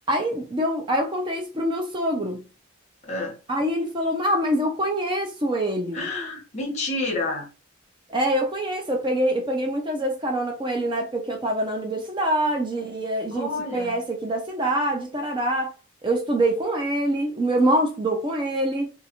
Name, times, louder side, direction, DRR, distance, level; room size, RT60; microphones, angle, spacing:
voice 1, 0.1-2.4 3.5-6.1 8.1-15.7 16.0-18.9, right 1 dB, 25° right, 0.5 m, -25 dB
voice 2, 3.0-3.4 5.9-7.5 13.3-14.0, left 2 dB, 35° left, 1.0 m, -29 dB
2.5 x 2.4 x 2.8 m
head